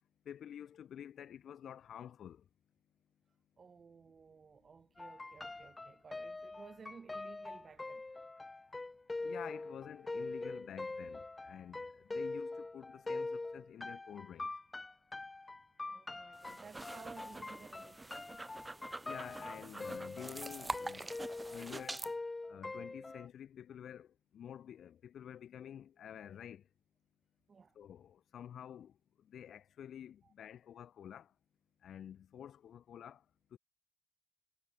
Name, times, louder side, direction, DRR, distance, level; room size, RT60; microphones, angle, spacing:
voice 1, 0.2-2.4 9.2-14.5 19.0-21.1 21.5-22.0 22.5-24.1 24.3-26.6 27.8-28.9 29.3-31.3 31.8-33.2 33.5-33.6, left 9 dB, 85° left, 1.1 m, -49 dB
voice 2, 3.6-8.1 15.9-18.4 27.5-27.8 30.2-30.3, right 5 dB, 65° right, 3.2 m, -56 dB
sound 1, 5.0-23.3, left 2 dB, 35° left, 0.9 m, -44 dB
sound 2, 16.3-22.1, right 2 dB, 30° right, 0.9 m, -45 dB
supercardioid pair, 45°, 0 cm